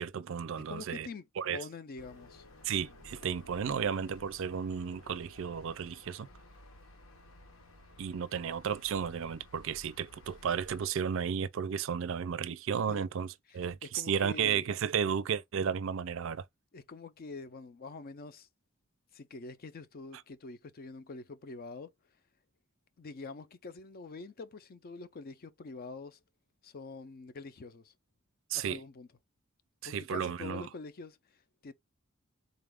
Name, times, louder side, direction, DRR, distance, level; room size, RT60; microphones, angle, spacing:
voice 1, 0.0-1.1 1.4-1.6 2.6-6.3 8.0-16.4 28.5-28.8 29.8-30.7, right 7 dB, 65° right, 0.4 m, -33 dB
voice 2, 0.7-2.5 12.9-13.0 13.9-14.6 16.7-18.5 19.1-21.9 23.0-26.2 26.6-27.9 28.5-29.1 29.8-31.4 31.6-31.7, left 4 dB, 45° left, 0.5 m, -45 dB
sound 1, 2.0-10.9, left 1 dB, 90° left, 1.1 m, -55 dB
3.9 x 2.4 x 3.4 m
head